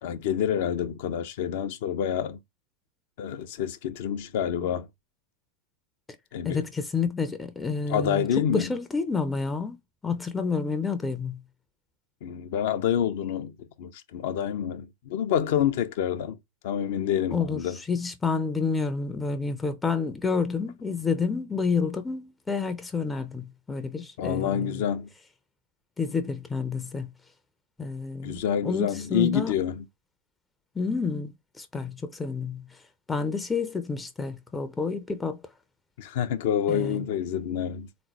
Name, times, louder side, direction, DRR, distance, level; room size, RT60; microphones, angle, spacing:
voice 1, 0.0-2.4 3.2-4.9 6.3-6.6 7.9-8.7 12.2-13.5 13.8-16.4 16.6-17.8 24.2-25.1 28.2-29.8 36.0-37.9, left 9 dB, 50° left, 0.6 m, -27 dB
voice 2, 6.4-9.8 10.0-11.4 17.3-24.8 26.0-27.1 27.8-29.6 30.8-32.6 33.1-35.4 36.7-37.1, left 4 dB, 10° left, 0.6 m, -29 dB
3.8 x 3.1 x 2.8 m
figure-of-eight pair, 90°, 0 cm